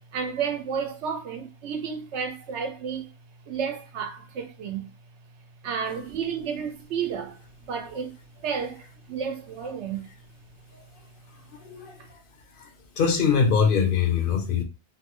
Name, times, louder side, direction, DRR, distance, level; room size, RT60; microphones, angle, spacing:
voice 1, 0.1-3.1 3.5-4.9 5.6-8.1 8.4-10.1, right 6 dB, 90° right, 1.0 m, -31 dB
voice 2, 11.4-12.2 12.5-12.7 13.0-14.6, left 6 dB, 60° left, 0.7 m, -23 dB
2.8 x 2.2 x 2.9 m
omnidirectional pair, 1.1 m